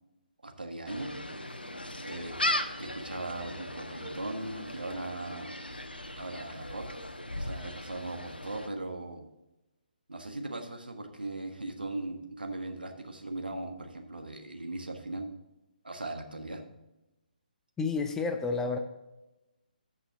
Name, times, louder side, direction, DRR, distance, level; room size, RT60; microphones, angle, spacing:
voice 1, 0.4-1.1 2.0-2.4 2.8-5.5 6.1-6.9 7.4-9.2 10.1-15.3 15.8-16.6, right 2 dB, 75° right, 4 dB, 1.4 m, -39 dB
Gull seagull, 0.9-8.7, left 1 dB, 80° left, 1.0 m, -37 dB
voice 2, 17.8-18.8, left 4 dB, 10° left, 6 dB, 0.5 m, -30 dB
14.0 x 5.7 x 3.7 m, 0.98 s
figure-of-eight pair, 140°, 5 cm